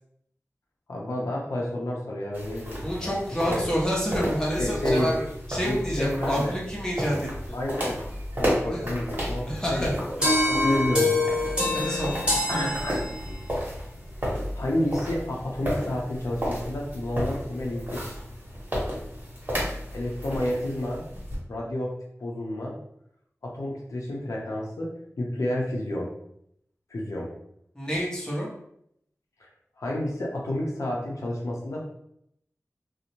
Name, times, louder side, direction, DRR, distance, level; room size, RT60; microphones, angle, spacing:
voice 1, 0.9-3.1 3.5-3.6 4.2-4.3 4.6-5.1 5.6-6.6 7.5-8.0 8.3-10.2 10.5-11.1 11.7-12.0 12.5-13.4 14.6-18.0 19.9-21.0 21.5-22.8 23.4-26.1 26.9-27.3 29.8-31.9, left 1 dB, 90° left, -2 dB, 0.6 m, -30 dB
sound 1, 2.3-21.4, equal, 35° right, 1.2 m, -33 dB
voice 2, 2.8-5.2 5.5-7.6 8.7-8.8 9.5-10.0 11.7-12.2 27.7-28.5, equal, 10° left, -4 dB, 0.8 m, -28 dB
sound 2, 10.2-13.5, left 2 dB, 20° right, 1.2 m, -25 dB
2.5 x 2.1 x 2.9 m, 0.73 s
wide cardioid pair, 55°, 5 cm